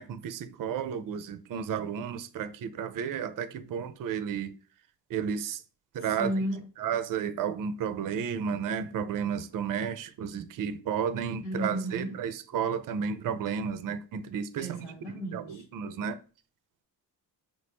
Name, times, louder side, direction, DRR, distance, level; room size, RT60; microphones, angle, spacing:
voice 1, 0.0-4.5 5.1-5.6 5.9-6.3 6.8-14.8 15.3-16.2, right 7 dB, 45° right, 0.5 m, -32 dB
voice 2, 6.0-6.7 11.4-12.2 14.6-15.6, equal, 65° left, 1.6 m, -34 dB
4.8 x 2.0 x 2.9 m
hypercardioid pair, 45°, 47 cm